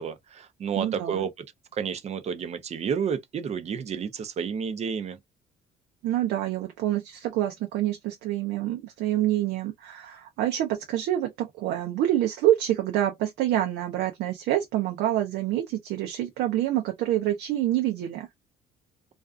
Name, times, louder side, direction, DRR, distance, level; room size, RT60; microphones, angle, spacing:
voice 1, 0.0-1.3 1.7-5.2, right 7 dB, 40° right, 0.6 m, -30 dB
voice 2, 0.8-1.3 6.0-18.3, right 13 dB, 80° right, 0.6 m, -27 dB
2.5 x 2.3 x 2.3 m
cardioid pair, 110°, 17 cm